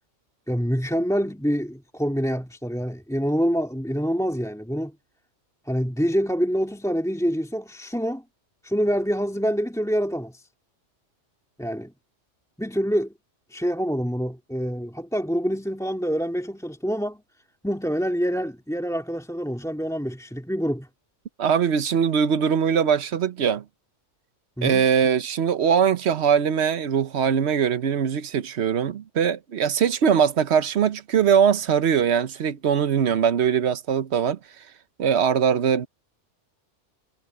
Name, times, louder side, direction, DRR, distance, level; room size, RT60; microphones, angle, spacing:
voice 1, 0.5-5.0 5.7-8.2 8.6-10.5 11.6-11.9 12.6-13.1 13.5-17.2 17.6-20.9 24.6-24.8, equal, 5° left, 2.1 m, -26 dB
voice 2, 21.4-23.6 24.6-34.4 35.0-35.9, right 7 dB, 65° right, 1.1 m, -21 dB
omnidirectional pair, 1.3 m